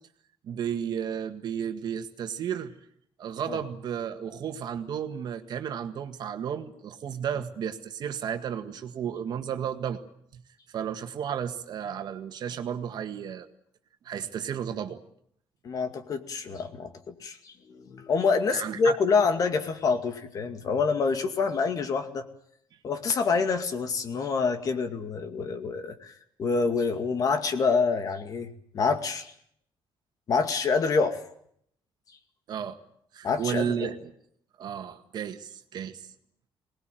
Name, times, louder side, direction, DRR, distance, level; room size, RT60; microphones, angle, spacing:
voice 1, 0.4-2.7 3.2-10.0 10.7-13.5 14.0-15.0 18.5-19.0 32.5-32.8 33.1-34.1 34.6-36.0, right 8 dB, 50° right, 7 dB, 1.8 m, -33 dB
voice 2, 15.6-22.3 22.8-26.1 26.4-29.3 30.3-31.2 33.2-33.9, left 4 dB, 40° left, 8 dB, 2.2 m, -27 dB
23.0 x 20.0 x 9.2 m, 0.69 s
cardioid pair, 165°, 9 cm